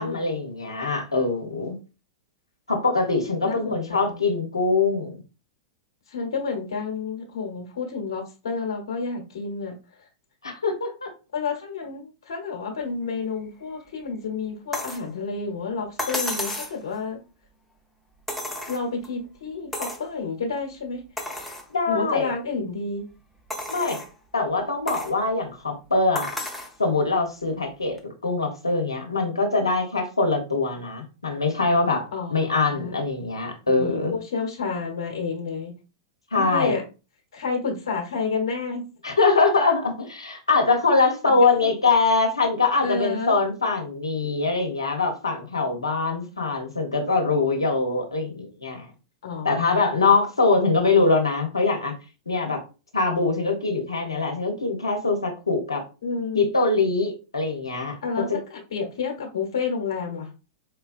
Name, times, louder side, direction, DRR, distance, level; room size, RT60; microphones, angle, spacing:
voice 1, 0.0-1.8 2.7-5.2 10.4-11.1 21.7-22.3 23.7-24.0 24.3-26.3 26.8-32.0 32.3-34.1 36.3-36.8 39.0-48.9 49.4-51.9 52.3-52.6 52.9-55.8 56.3-58.0, left 3 dB, 80° left, 1.0 m, -23 dB
voice 2, 3.4-4.2 6.1-9.8 11.3-17.2 18.7-21.0 21.9-23.1 32.1-33.1 33.7-35.7 36.3-36.8 37.3-38.8 41.3-41.7 42.8-43.4 49.2-50.0 56.0-56.5 58.0-60.3, left 4 dB, 65° left, 1.2 m, -30 dB
sound 1, 14.7-15.1 16.0-16.8 18.3-19.1 19.7-20.1 20.6-20.7 21.2-21.7 22.3-22.4 23.5-24.1 24.9-25.2 26.2-26.7 28.0-28.1, left 1 dB, ahead, 0.8 m, -32 dB
4.5 x 2.2 x 2.5 m
figure-of-eight pair, 95°, 3 cm